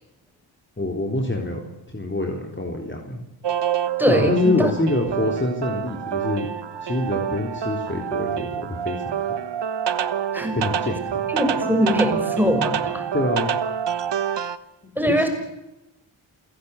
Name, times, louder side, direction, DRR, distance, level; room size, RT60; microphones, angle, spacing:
voice 1, 0.8-3.2 4.1-6.5 6.8-9.3 10.5-11.3 13.1-13.5 15.1-15.3, left 2 dB, 25° left, 2 dB, 3.7 m, -26 dB
sound 1, 3.4-14.6, right 8 dB, 60° right, 1.3 m, -27 dB
voice 2, 4.0-4.7 10.3-10.6 11.3-13.0 15.0-15.3, equal, 5° right, 5 dB, 6.5 m, -21 dB
28.5 x 16.0 x 8.3 m, 0.94 s
cardioid pair, 50°, 47 cm